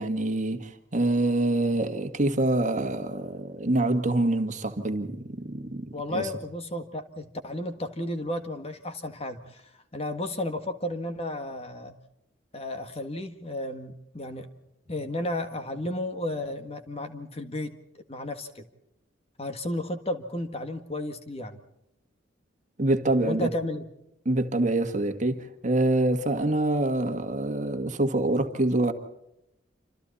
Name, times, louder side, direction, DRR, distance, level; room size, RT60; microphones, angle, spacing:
voice 1, 0.0-6.3 22.8-23.5 24.3-28.9, right 2 dB, 40° right, 1.8 m, -26 dB
voice 2, 5.9-12.0 12.5-14.5 14.9-17.8 18.1-18.6 19.4-21.6 23.2-23.8, left 1 dB, 30° left, 1.8 m, -33 dB
28.0 x 27.0 x 4.2 m
head